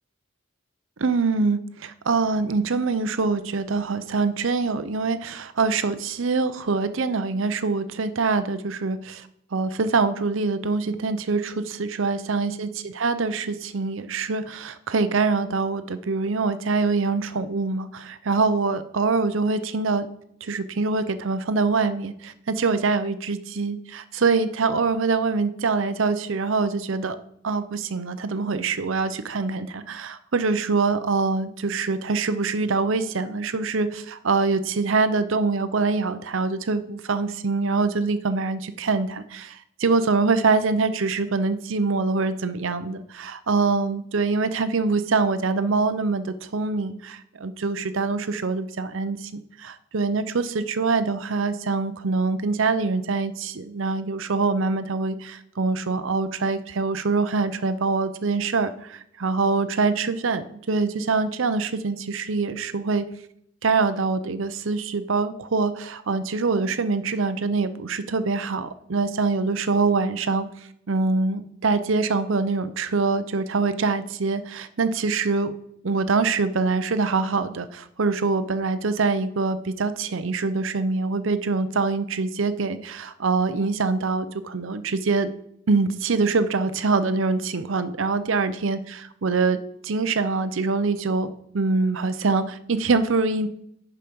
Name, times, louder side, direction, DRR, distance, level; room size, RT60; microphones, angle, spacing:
voice 1, 1.0-20.1 20.4-27.2 27.4-49.3 49.6-63.1 63.6-70.5 70.9-75.5 75.8-85.3 85.7-89.6 89.8-93.5, right 4 dB, 65° right, 12 dB, 0.6 m, -24 dB
10.0 x 5.0 x 5.3 m, 0.75 s
head